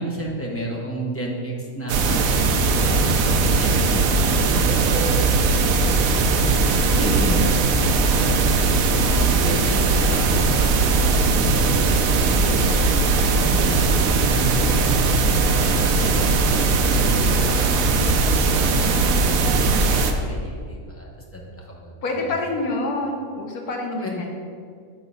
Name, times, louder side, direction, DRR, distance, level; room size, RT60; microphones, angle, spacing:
voice 1, 0.0-5.0 6.4-8.2 8.5-15.1 15.4-22.3 24.0-24.3, equal, 10° left, -3 dB, 0.8 m, -32 dB
sound 1, 1.9-20.1, right 3 dB, 70° right, 1.0 m, -19 dB
voice 2, 22.0-24.3, left 2 dB, 85° left, 1 dB, 1.5 m, -27 dB
7.3 x 3.8 x 5.5 m, 2.1 s
omnidirectional pair, 1.6 m